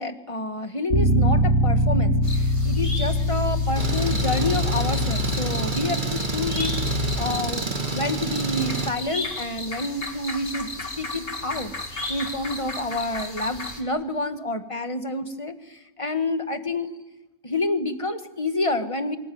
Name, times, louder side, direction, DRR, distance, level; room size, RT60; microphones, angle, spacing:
voice 1, 0.0-11.7 12.1-16.9 17.4-19.2, left 2 dB, 25° left, 8 dB, 1.7 m, -28 dB
Bass guitar, 0.9-7.2, left 1 dB, 55° right, 3.4 m, -23 dB
sound 1, 2.2-13.8, left 2 dB, 50° left, 2.7 m, -35 dB
Engine, 3.8-8.9, right 3 dB, 40° right, 2.2 m, -28 dB
25.0 x 21.0 x 9.4 m, 1.1 s
omnidirectional pair, 1.3 m